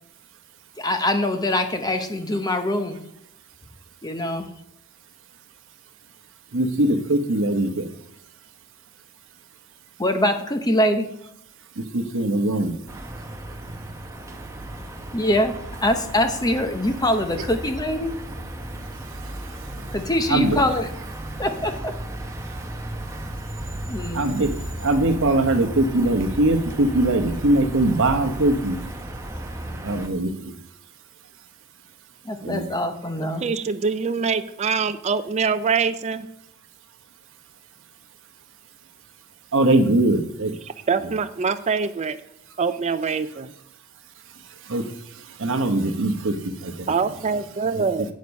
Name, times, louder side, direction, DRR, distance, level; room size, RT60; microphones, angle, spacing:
voice 1, 0.8-3.0 4.0-4.5 10.0-11.1 15.1-15.5 15.8-18.1 19.9-20.9 21.4-21.9 23.9-24.3 32.2-33.5, left 1 dB, 20° left, 7 dB, 0.8 m, -23 dB
voice 2, 6.5-7.9 11.8-12.7 20.3-20.6 24.1-24.5 24.8-28.8 29.8-30.5 32.4-32.6 39.5-40.5 44.7-44.8 45.4-46.9 47.7-47.8, right 2 dB, 60° right, 6 dB, 1.0 m, -21 dB
sound 1, 12.9-30.1, right 1 dB, 15° right, 0.8 m, -35 dB
voice 3, 33.4-36.3 40.9-42.2 42.6-43.5 46.9-48.1, right 5 dB, 30° right, 10 dB, 0.4 m, -24 dB
8.4 x 6.5 x 5.2 m, 0.79 s
head